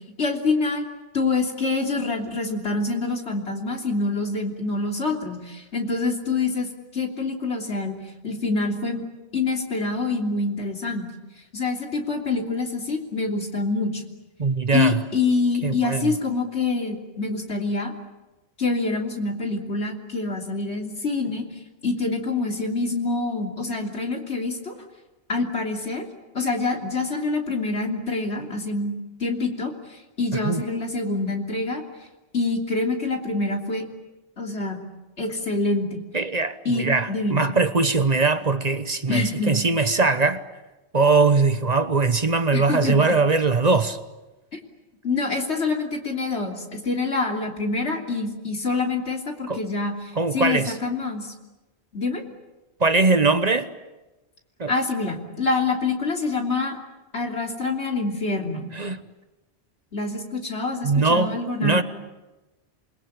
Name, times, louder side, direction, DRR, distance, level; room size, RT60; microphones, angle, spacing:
voice 1, 0.2-0.9 1.1-8.0 8.2-9.1 9.3-11.0 11.5-14.0 14.7-17.9 18.6-21.5 21.8-24.8 25.3-26.1 26.3-28.9 29.2-31.8 32.3-33.9 34.4-34.8 35.2-36.0 36.7-37.4 39.1-39.6 42.5-43.1 45.0-51.3 51.9-52.2 54.7-56.8 57.1-58.7 59.9-61.8, left 3 dB, 85° left, 3.5 m, -26 dB
voice 2, 14.4-15.0 15.6-16.1 30.4-30.6 36.1-40.4 40.9-44.0 49.5-49.6 50.1-50.7 52.8-53.7 54.6-54.7 58.7-59.0 60.8-61.8, right 3 dB, 40° right, 1.1 m, -21 dB
27.5 x 22.0 x 8.9 m
omnidirectional pair, 1.1 m